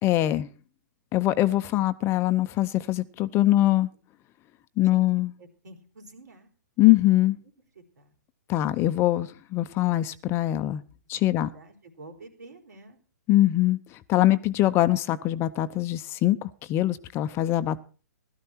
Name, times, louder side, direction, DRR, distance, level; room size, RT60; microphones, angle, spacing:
voice 1, 0.0-0.5 1.1-3.9 4.8-5.3 6.8-7.4 8.5-10.8 11.1-11.5 13.3-13.8 14.1-17.8, left 15 dB, 25° left, 13 dB, 0.7 m, -23 dB
voice 2, 5.4-6.5 7.7-8.1 11.1-13.0, right 2 dB, 70° right, 4 dB, 4.4 m, -49 dB
16.5 x 13.0 x 4.5 m, 0.38 s
hypercardioid pair, 125°, 10 cm